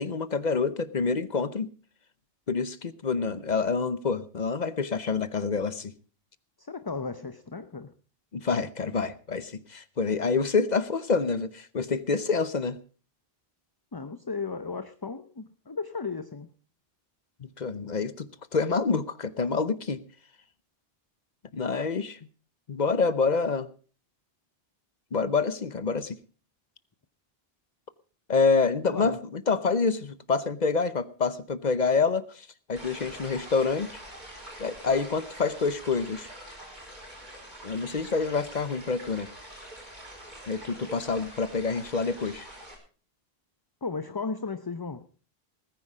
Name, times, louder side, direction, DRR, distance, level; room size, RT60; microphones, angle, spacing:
voice 1, 0.0-1.7 2.5-5.9 8.3-12.8 17.4-20.0 21.5-22.2 22.7-23.7 25.1-26.2 28.3-33.9 34.6-36.3 37.6-39.3 40.5-42.5, left 4 dB, 45° left, 15 dB, 0.9 m, -27 dB
voice 2, 6.6-7.9 13.9-16.5 28.9-29.2 43.8-45.1, left 4 dB, 25° left, 11 dB, 0.7 m, -35 dB
sound 1, 32.8-42.8, right 1 dB, 50° right, 5.6 m, -45 dB
19.5 x 9.8 x 4.9 m, 0.39 s
omnidirectional pair, 1.0 m